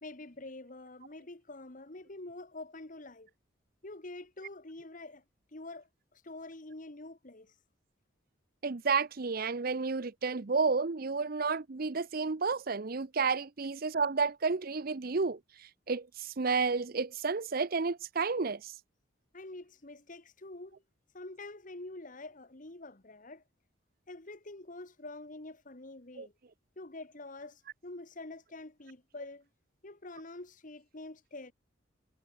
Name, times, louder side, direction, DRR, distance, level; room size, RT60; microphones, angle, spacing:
voice 1, 0.0-3.3 3.8-5.2 5.5-7.5 19.3-20.8 21.1-23.4 24.1-26.3 26.8-29.5 29.8-31.5, left 2 dB, 40° left, 1.5 m, -46 dB
voice 2, 8.6-15.4 15.9-18.7 26.2-26.3, right 4 dB, 50° right, 0.7 m, -31 dB
head